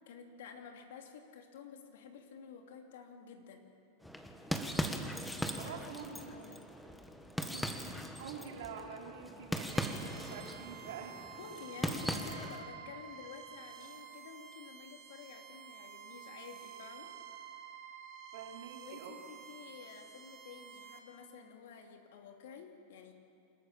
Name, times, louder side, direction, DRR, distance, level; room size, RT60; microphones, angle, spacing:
voice 1, 0.0-3.7 5.4-5.8 6.2-6.7 11.4-17.2 18.9-23.1, left 6 dB, 70° left, 4 dB, 2.7 m, -51 dB
sound 1, 4.0-12.7, equal, 5° left, 1.5 m, -39 dB
voice 2, 4.5-4.9 5.6-6.3 7.2-11.2 18.3-19.2, right 7 dB, 70° right, 1 dB, 3.3 m, -47 dB
sound 2, 9.7-21.0, right 9 dB, 45° right, 3.6 m, -51 dB
28.0 x 13.0 x 7.3 m, 2.4 s
hypercardioid pair, 105°, 0 cm